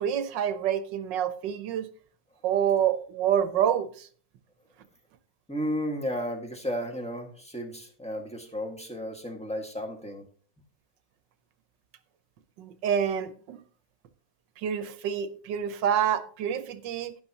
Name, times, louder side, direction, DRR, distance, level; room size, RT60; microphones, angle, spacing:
voice 1, 0.0-1.9 2.4-4.1 12.6-13.6 14.6-17.2, right 9 dB, 90° right, 11 dB, 1.5 m, -27 dB
voice 2, 5.5-10.2, equal, 5° left, 2 dB, 1.6 m, -33 dB
11.5 x 10.5 x 2.9 m, 0.44 s
omnidirectional pair, 1.9 m